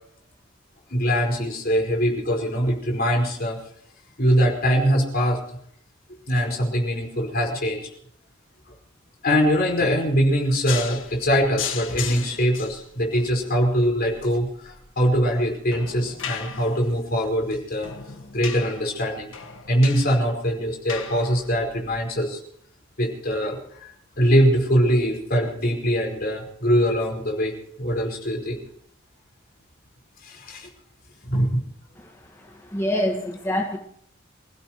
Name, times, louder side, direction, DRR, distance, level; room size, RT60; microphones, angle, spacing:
voice 1, 0.9-3.6 4.2-5.4 6.3-7.9 9.2-17.9 18.3-19.3 19.7-22.4 23.0-28.6 30.2-30.7 31.2-31.6, equal, 50° left, 0 dB, 5.0 m, -22 dB
sound 1, 10.7-21.9, left 8 dB, 80° left, 1.6 m, -37 dB
voice 2, 32.0-33.8, left 1 dB, 15° left, 0 dB, 1.7 m, -27 dB
27.5 x 16.0 x 3.1 m, 0.69 s
head